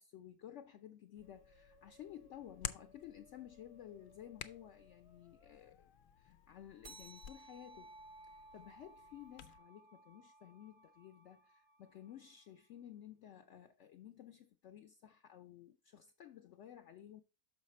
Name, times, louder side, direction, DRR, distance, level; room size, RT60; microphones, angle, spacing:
voice 1, 0.0-5.9 6.2-7.9 8.2-17.2, left 11 dB, 65° left, 0.7 m, -54 dB
Hands, 1.2-9.6, left 10 dB, 80° left, 1.1 m, -53 dB
Musical instrument, 1.2-13.0, left 1 dB, 25° left, 0.6 m, -70 dB
sound 1, 6.8-11.8, right 2 dB, 45° right, 0.8 m, -58 dB
6.4 x 5.4 x 4.1 m
omnidirectional pair, 1.6 m